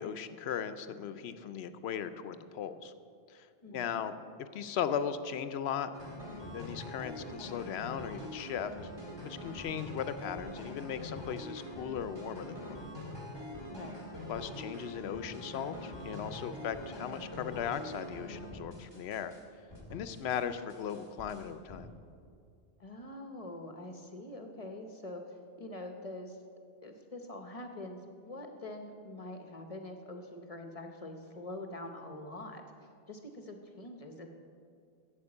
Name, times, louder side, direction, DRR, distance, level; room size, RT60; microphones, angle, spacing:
voice 1, 0.0-2.9 3.3-3.5 3.7-5.9 6.5-8.9 9.2-12.9 14.3-19.3 19.9-21.9, left 8 dB, 80° left, 11 dB, 0.8 m, -37 dB
voice 2, 3.6-4.0 13.6-14.0 22.8-26.4 26.8-32.6 33.1-34.3, left 1 dB, 40° left, 5 dB, 0.8 m, -44 dB
sound 1, 5.9-19.4 19.7-20.4 20.7-21.8, left 1 dB, 25° right, 1.9 m, -44 dB
8.0 x 7.6 x 8.7 m, 2.4 s
omnidirectional pair, 1.1 m